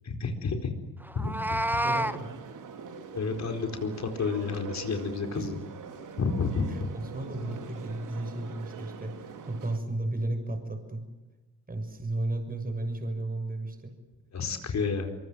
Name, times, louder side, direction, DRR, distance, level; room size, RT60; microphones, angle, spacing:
voice 1, 0.0-0.7 1.1-1.3 3.1-5.6 6.2-6.9 14.3-15.1, left 4 dB, 45° left, 5 dB, 4.5 m, -30 dB
Meow, 1.1-2.2, right 1 dB, 5° right, 1.4 m, -28 dB
voice 2, 1.5-2.3 5.4-5.5 6.7-11.0 11.7-14.0, right 2 dB, 20° right, 7 dB, 6.4 m, -34 dB
sound 1, 1.8-9.8, right 6 dB, 50° right, 3.4 m, -43 dB
25.0 x 23.5 x 7.8 m, 1.1 s
hypercardioid pair, 60°, 39 cm